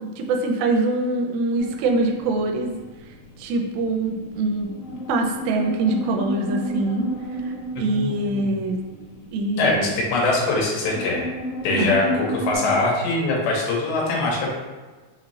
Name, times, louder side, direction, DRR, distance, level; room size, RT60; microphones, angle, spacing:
voice 1, 0.0-2.7 3.4-4.7 5.1-7.1 7.4-8.8 9.3-9.9 11.8-12.0, right 2 dB, 85° right, 3 dB, 2.4 m, -24 dB
sound 1, 1.6-12.6, right 1 dB, 70° left, 2.7 m, -32 dB
voice 2, 7.8-8.5 9.6-11.2 11.6-14.5, left 2 dB, 85° left, -3 dB, 2.8 m, -23 dB
5.7 x 2.7 x 3.0 m, 1.3 s
omnidirectional pair, 4.2 m